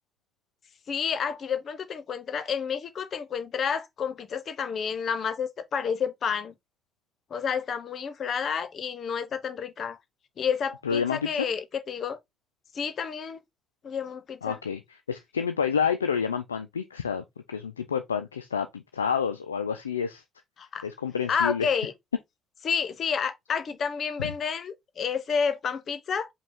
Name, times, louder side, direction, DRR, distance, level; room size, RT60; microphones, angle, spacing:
voice 1, 0.9-6.5 7.3-10.0 10.4-12.2 12.7-13.4 13.8-14.6 20.6-20.9 21.3-21.9 22.6-26.3, left 6 dB, 50° left, 0.8 m, -30 dB
voice 2, 10.8-11.5 14.4-20.2 20.8-21.7, left 7 dB, 90° left, 0.3 m, -29 dB
5.1 x 2.3 x 3.5 m
figure-of-eight pair, 45°, 0 cm